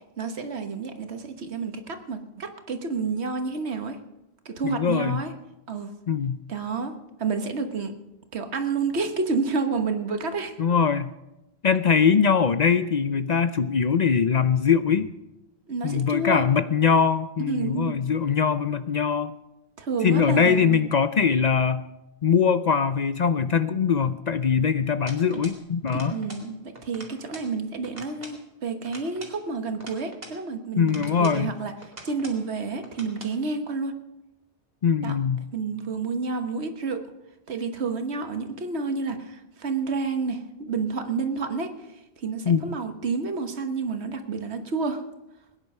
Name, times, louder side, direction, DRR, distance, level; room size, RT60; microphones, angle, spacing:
voice 1, 0.2-4.0 4.4-5.3 5.7-5.9 6.5-6.9 7.2-7.9 8.3-10.5 15.7-16.4 17.4-18.0 19.8-20.8 25.9-31.7 32.0-33.9 35.0-35.2 35.5-37.0 37.5-41.7 42.2-45.0, right 4 dB, 90° right, 7 dB, 1.6 m, -29 dB
voice 2, 4.6-5.2 6.1-6.4 10.6-11.1 11.6-15.1 15.8-19.3 20.0-21.8 22.2-26.2 30.8-31.5 34.8-35.5 42.5-42.7, left 6 dB, 50° left, 12 dB, 0.6 m, -22 dB
sound 1, 25.1-25.6 25.9-26.5 26.8-27.5 27.8-28.4 28.8-30.4 30.9-31.4 31.8-32.4 32.8-33.4, right 1 dB, 40° right, 2.6 m, -44 dB
20.5 x 10.0 x 5.5 m, 0.93 s
omnidirectional pair, 1.1 m